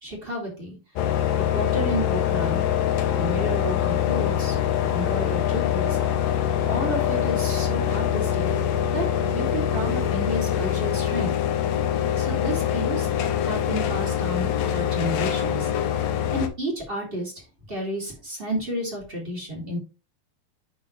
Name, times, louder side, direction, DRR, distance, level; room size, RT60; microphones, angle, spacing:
voice 1, 0.0-0.8 1.5-2.7 3.1-4.6 4.8-6.0 6.7-8.5 8.9-9.1 9.3-11.3 12.2-15.7 16.3-17.3 17.7-19.8, equal, 20° right, -2 dB, 1.8 m, -31 dB
sound 1, 1.0-16.5, left 10 dB, 75° left, 2.4 m, -24 dB
11.0 x 4.0 x 3.1 m, 0.30 s
omnidirectional pair, 4.3 m